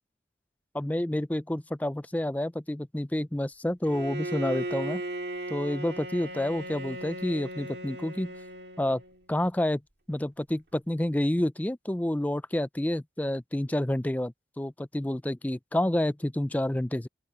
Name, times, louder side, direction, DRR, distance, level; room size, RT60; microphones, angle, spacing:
voice 1, 0.7-5.0 5.5-8.3 8.8-9.0 9.3-9.8 10.1-17.1, left 1 dB, 10° left, 0.4 m, -29 dB
Bowed string instrument, 3.8-9.3, right 1 dB, 65° right, 2.1 m, -37 dB
open air
head